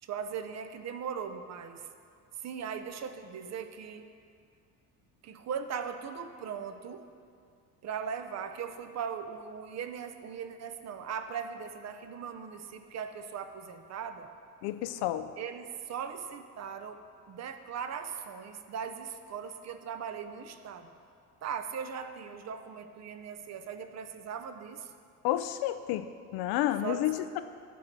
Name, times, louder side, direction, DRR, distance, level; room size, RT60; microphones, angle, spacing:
voice 1, 0.0-1.9 2.4-4.1 5.2-7.0 7.8-14.3 15.4-20.9 21.4-24.9 26.8-27.1, right 7 dB, 45° right, 8 dB, 0.6 m, -39 dB
voice 2, 14.6-15.3 25.2-26.0 26.3-27.4, left 13 dB, 70° left, 11 dB, 0.5 m, -30 dB
9.4 x 3.9 x 5.9 m, 2.3 s
supercardioid pair, 75°, 39 cm